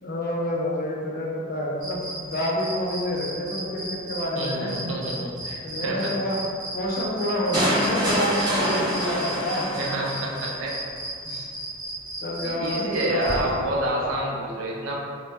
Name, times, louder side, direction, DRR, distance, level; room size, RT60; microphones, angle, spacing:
voice 1, 0.0-4.7 5.6-6.4 6.7-9.7 11.2-11.5 12.2-13.6, left 1 dB, 50° left, -3 dB, 0.4 m, -28 dB
sound 1, 1.8-13.5, right 1 dB, 35° right, 0.9 m, -34 dB
voice 2, 4.3-6.1 9.7-10.8 12.4-14.9, right 1 dB, 80° right, -3 dB, 0.5 m, -28 dB
sound 2, 7.5-10.5, equal, 20° right, 0.6 m, -26 dB
2.1 x 2.1 x 3.2 m, 2.2 s
head